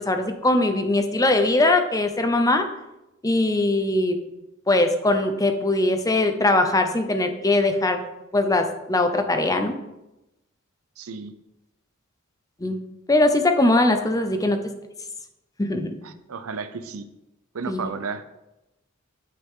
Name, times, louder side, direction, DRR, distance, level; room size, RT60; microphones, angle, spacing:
voice 1, 0.1-2.6 3.2-4.2 4.7-8.0 8.3-9.7 12.6-12.8 13.1-14.6 15.6-16.0 17.7-17.8, left 2 dB, 15° left, 6 dB, 0.7 m, -21 dB
voice 2, 11.0-11.3 16.0-17.1 17.5-18.3, right 5 dB, 80° right, 11 dB, 0.6 m, -33 dB
9.1 x 6.0 x 3.7 m, 0.93 s
head